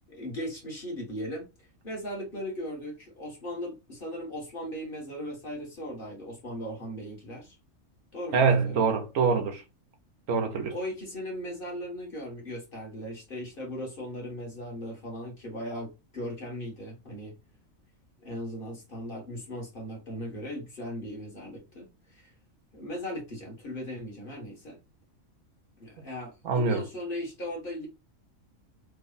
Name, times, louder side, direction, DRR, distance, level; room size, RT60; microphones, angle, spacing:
voice 1, 0.1-1.5 1.8-7.5 8.1-8.9 10.7-17.3 18.2-22.3 22.7-24.8 25.8-27.9, equal, 40° left, 1.4 m, -38 dB
voice 2, 8.3-9.6 10.3-10.8 26.4-26.8, right 5 dB, 75° right, 1.1 m, -24 dB
3.3 x 2.1 x 3.8 m
omnidirectional pair, 1.4 m